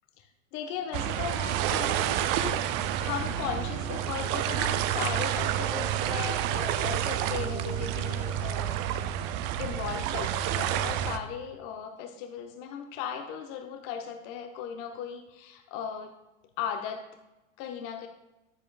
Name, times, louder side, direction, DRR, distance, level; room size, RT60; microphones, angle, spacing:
voice 1, 0.2-2.6 3.0-8.8 9.6-16.1 16.6-17.1 17.6-18.1, left 8 dB, 45° left, 6 dB, 0.8 m, -37 dB
sound 1, 0.9-11.2, right 11 dB, 30° right, 0.3 m, -29 dB
9.7 x 7.5 x 2.4 m, 1.0 s
figure-of-eight pair, 90°, 40 cm